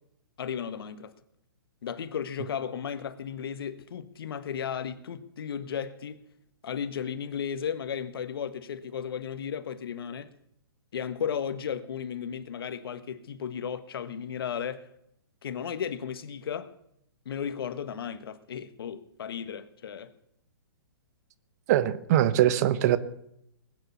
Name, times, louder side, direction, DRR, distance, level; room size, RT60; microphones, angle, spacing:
voice 1, 0.4-1.1 1.8-6.2 6.6-10.3 10.9-14.9 15.4-16.7 17.2-20.1, left 8 dB, 65° left, 1.4 m, -34 dB
voice 2, 21.7-23.0, right 12 dB, 40° right, 1.1 m, -22 dB
20.5 x 9.6 x 7.1 m
hypercardioid pair, 140°, 13 cm